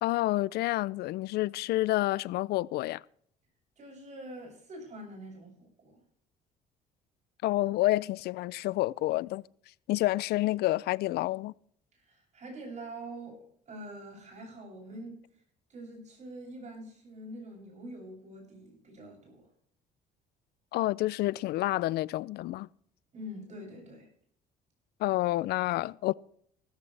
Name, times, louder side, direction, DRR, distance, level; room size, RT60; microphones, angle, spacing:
voice 1, 0.0-3.0 7.4-9.4 9.9-11.5 20.7-22.7 25.0-26.1, left 17 dB, 75° left, 0.4 m, -29 dB
voice 2, 3.8-6.0 12.1-15.2 15.7-19.4 23.1-24.1, right 1 dB, 45° right, 7.7 m, -45 dB
16.5 x 14.0 x 3.3 m
cardioid pair, 110°, 17 cm